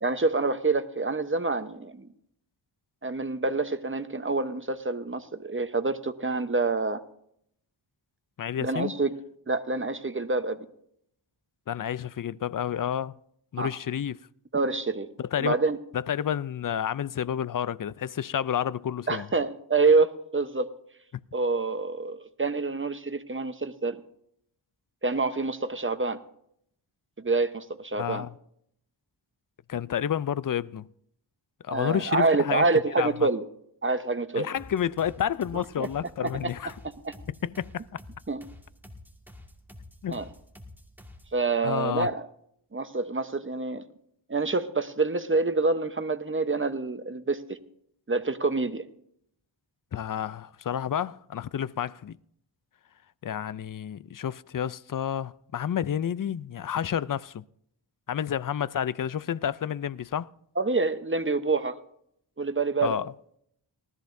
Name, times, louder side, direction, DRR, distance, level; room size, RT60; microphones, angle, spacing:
voice 1, 0.0-2.1 3.0-7.0 8.6-9.1 9.5-10.7 13.6-13.7 14.5-15.1 15.4-15.8 19.1-20.7 21.3-24.0 25.0-26.2 27.2-28.3 31.7-33.4 33.8-34.5 35.8-35.9 36.2-36.3 36.8-37.1 38.3-38.4 40.1-40.2 41.3-42.3 42.7-43.8 44.3-47.6 48.1-48.9 60.6-61.8 62.4-63.0, right 3 dB, 25° right, 1.0 m, -27 dB
voice 2, 8.4-8.9 11.7-13.2 13.5-14.2 15.2-15.6 15.9-19.3 28.0-28.3 29.7-30.9 31.6-32.7 33.0-33.3 34.3-36.7 37.4-38.0 40.0-40.2 41.6-42.1 49.9-52.2 53.2-57.4 58.1-60.3 62.8-63.1, left 9 dB, 45° left, 0.5 m, -30 dB
sound 1, 34.6-41.4, left 1 dB, 5° right, 2.0 m, -49 dB
19.0 x 13.5 x 2.6 m
cardioid pair, 45°, 48 cm